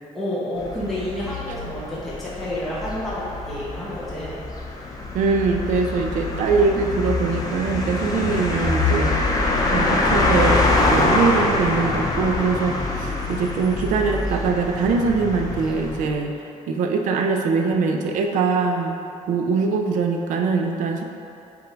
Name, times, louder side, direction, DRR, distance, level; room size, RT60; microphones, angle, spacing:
voice 1, 0.1-4.3, left 1 dB, ahead, -10 dB, 1.2 m, -29 dB
sound 1, 0.6-16.1, left 2 dB, 30° left, 0.7 m, -24 dB
voice 2, 5.1-9.1 9.7-10.6 10.9-16.3 16.7-18.9 19.3-21.0, right 4 dB, 70° right, 3 dB, 0.7 m, -22 dB
7.2 x 3.8 x 4.5 m, 2.8 s
cardioid pair, 165°, 13 cm